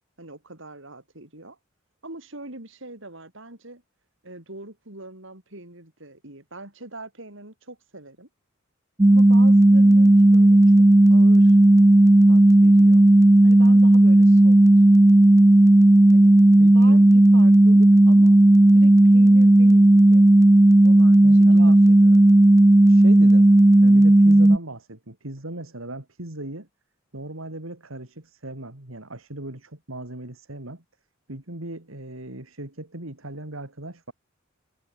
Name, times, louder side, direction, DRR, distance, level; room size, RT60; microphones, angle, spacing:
voice 1, 0.2-1.6 2.0-3.8 4.2-8.3 9.1-11.6 12.3-13.1 13.4-14.6 16.1-18.4 18.7-20.3 20.8-22.4, right 2 dB, 65° right, 6.2 m, -42 dB
sound 1, 9.0-24.6, right 1 dB, 15° right, 0.5 m, -13 dB
voice 2, 16.6-17.0 21.2-21.8 22.9-26.7 27.1-30.8 31.3-34.1, right 1 dB, 85° right, 3.5 m, -38 dB
head